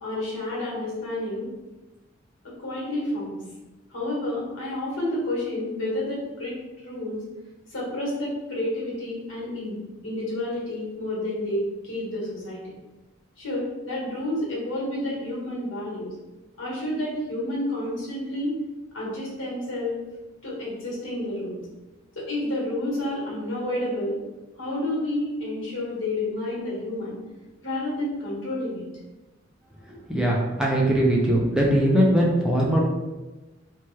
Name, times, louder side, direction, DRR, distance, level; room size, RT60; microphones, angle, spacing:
voice 1, 0.0-1.5 2.4-3.4 3.9-7.2 7.7-9.8 10.0-12.7 13.4-16.1 16.6-18.6 18.9-20.0 20.4-21.6 22.1-24.2 24.6-27.2 27.6-28.9, left 1 dB, 85° left, -5 dB, 1.3 m, -30 dB
voice 2, 30.1-32.8, right 1 dB, 5° right, -3 dB, 0.4 m, -20 dB
2.9 x 2.3 x 3.1 m, 1.1 s
head